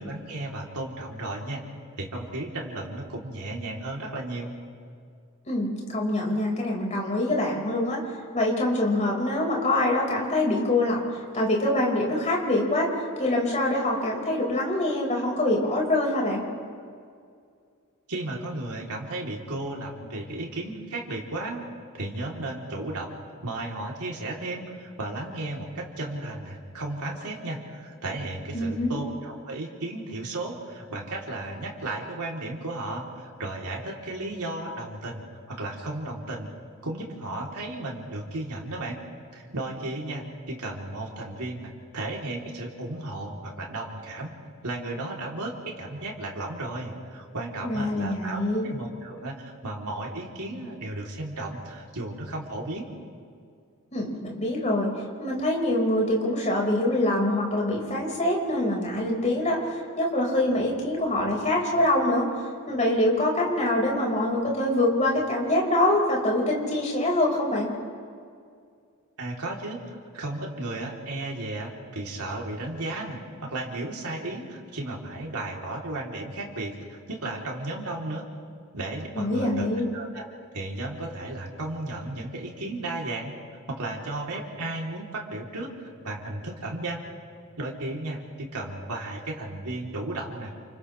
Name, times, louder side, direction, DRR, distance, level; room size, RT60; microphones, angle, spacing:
voice 1, 0.0-1.6 2.0-4.5 18.1-21.6 21.9-23.2 23.4-36.5 36.8-39.0 39.3-44.3 44.6-52.8 69.2-78.2 78.7-80.3 80.5-83.3 83.7-87.0 87.6-90.5, right 2 dB, 85° right, -1 dB, 3.4 m, -34 dB
voice 2, 5.5-16.4 28.5-29.0 47.6-48.7 53.9-62.3 62.7-67.7 79.1-79.9, left 1 dB, 35° left, -2 dB, 5.0 m, -25 dB
30.0 x 29.0 x 3.3 m, 2.2 s
head